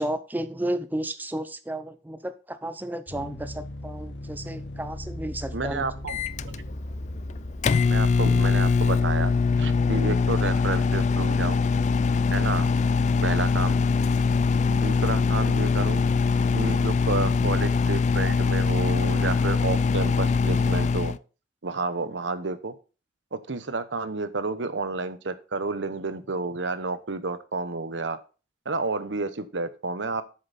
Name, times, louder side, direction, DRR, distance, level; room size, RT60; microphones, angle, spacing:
voice 1, 0.0-5.8, right 1 dB, 10° right, 11 dB, 0.5 m, -32 dB
sound 1, 3.1-10.3, left 1 dB, 80° left, 1.4 m, -39 dB
voice 2, 5.5-6.2 6.4-6.6 7.9-9.3 9.6-11.6 12.3-12.7 13.2-13.8 14.7-16.0 16.5-21.1 21.6-22.7 23.3-28.2 28.6-30.2, right 3 dB, 90° right, 13 dB, 1.0 m, -30 dB
Microwave oven, 6.1-21.2, left 4 dB, 40° left, 0.3 m, -23 dB
7.9 x 6.8 x 4.1 m, 0.34 s
head